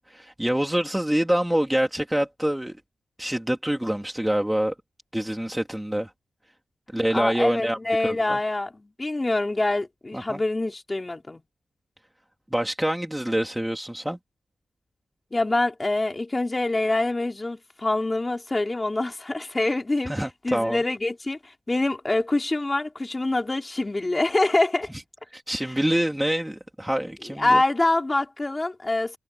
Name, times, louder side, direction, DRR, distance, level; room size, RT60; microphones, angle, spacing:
voice 1, 0.0-2.8 3.2-4.7 5.1-6.1 6.9-7.8 8.0-8.4 10.1-10.4 12.5-14.2 20.1-20.8 25.3-27.6, right 1 dB, 5° right, 1.9 m, -26 dB
voice 2, 7.1-11.4 15.3-20.1 20.4-21.4 21.7-24.9 27.4-29.2, left 2 dB, 20° left, 4.1 m, -25 dB
wide cardioid pair, 145°, 0 cm